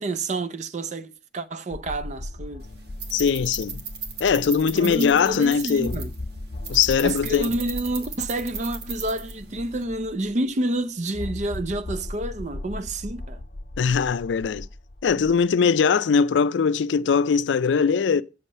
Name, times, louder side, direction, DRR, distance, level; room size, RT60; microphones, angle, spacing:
voice 1, 0.0-2.7 4.8-6.1 7.0-13.4, right 1 dB, 40° right, 0.5 m, -29 dB
sound 1, 1.7-5.0 5.3-5.4 5.8-10.4 11.1-15.5, left 1 dB, 45° left, 0.6 m, -37 dB
sound 2, 2.6-9.8, right 5 dB, 60° right, 1.4 m, -37 dB
voice 2, 3.1-3.8 4.2-6.0 6.7-7.5 13.8-14.7 15.0-18.2, left 6 dB, 80° left, 0.4 m, -21 dB
7.3 x 6.4 x 5.4 m
head